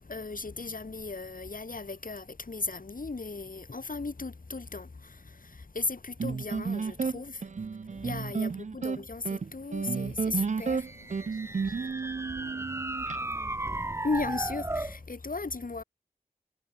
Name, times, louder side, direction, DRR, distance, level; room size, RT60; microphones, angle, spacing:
voice 1, 0.0-7.4 8.0-10.9 14.0-15.8, left 3 dB, 70° left, 2.6 m, -36 dB
sound 1, 6.2-13.2, right 5 dB, 55° right, 0.5 m, -32 dB
sound 2, 10.6-15.0, right 1 dB, 20° right, 0.7 m, -35 dB
voice 2, 11.2-13.3, left 1 dB, 25° left, 5.8 m, -61 dB
wide cardioid pair, 50°, 15 cm